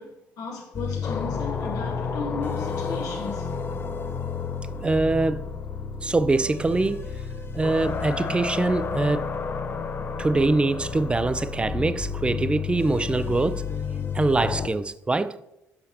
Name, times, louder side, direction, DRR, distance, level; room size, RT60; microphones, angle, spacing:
voice 1, 0.0-3.6, left 4 dB, 70° left, 0.8 m, -35 dB
sound 1, 0.7-14.7, left 5 dB, 35° left, 0.5 m, -31 dB
voice 2, 4.8-5.6 6.0-7.2 7.5-9.3 10.2-13.7 14.1-15.4, right 2 dB, 15° right, 0.4 m, -24 dB
6.5 x 5.6 x 2.7 m
supercardioid pair, 65°, 6 cm